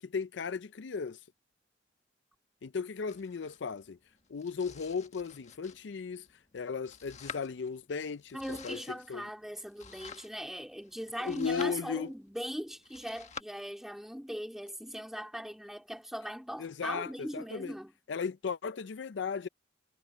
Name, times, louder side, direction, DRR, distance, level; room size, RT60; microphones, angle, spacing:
voice 1, 0.0-1.2 2.6-4.0 4.3-6.3 6.5-8.8 9.1-9.3 11.2-12.1 16.6-17.7 18.1-19.5, left 5 dB, 70° left, 0.5 m, -36 dB
Domestic sounds home sounds, 3.1-13.4, left 6 dB, 40° left, 1.6 m, -50 dB
voice 2, 8.3-17.9, equal, ahead, 3.4 m, -40 dB
head